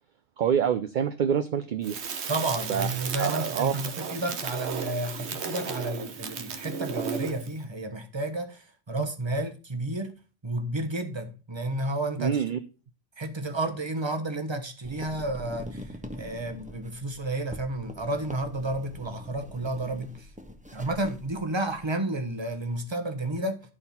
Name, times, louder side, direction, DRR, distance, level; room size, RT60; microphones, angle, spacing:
voice 1, 0.4-2.0 2.7-2.9 3.2-4.0 9.0-9.1 12.2-12.6, right 8 dB, 55° right, 0.7 m, -27 dB
Crackle, 1.8-7.5, right 6 dB, 85° right, 1.3 m, -34 dB
voice 2, 2.3-10.1 10.4-12.4 13.2-15.8 16.2-20.1 20.7-23.6, right 2 dB, 25° right, 1.1 m, -31 dB
sound 1, 14.8-21.9, equal, 10° right, 0.8 m, -44 dB
11.0 x 4.4 x 5.4 m
omnidirectional pair, 1.1 m